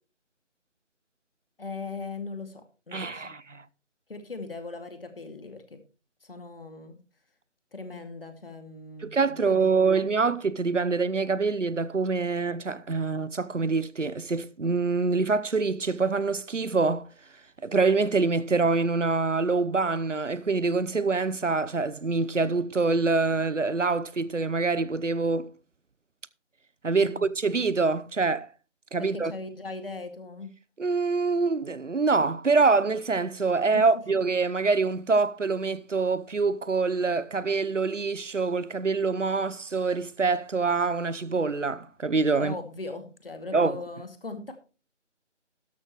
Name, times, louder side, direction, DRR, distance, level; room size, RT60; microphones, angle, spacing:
voice 1, 1.6-3.3 4.1-5.8 6.2-7.0 7.7-10.3 27.0-27.3 29.0-30.5 33.7-33.8 42.4-44.5, left 3 dB, 50° left, 2.3 m, -39 dB
voice 2, 2.9-3.6 9.0-17.1 17.6-25.5 26.8-28.5 28.9-29.3 30.8-42.5 43.5-43.8, right 4 dB, 80° right, 0.9 m, -25 dB
13.0 x 11.5 x 3.0 m
figure-of-eight pair, 160°, 36 cm